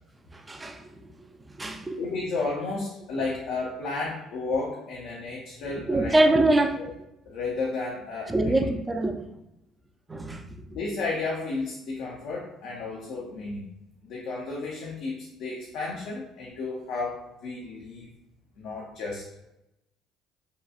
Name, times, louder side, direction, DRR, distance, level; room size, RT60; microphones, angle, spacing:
voice 1, 0.3-0.9 1.6-2.0 5.8-6.8 8.3-9.2 10.1-10.4, right 1 dB, 20° right, 5 dB, 0.4 m, -24 dB
voice 2, 2.0-6.2 6.8-6.9 7.3-8.5 10.7-13.6 14.0-18.1 18.6-19.2, left 3 dB, 75° left, -3 dB, 0.5 m, -32 dB
2.7 x 2.2 x 2.4 m, 0.87 s
supercardioid pair, 80°, 0 cm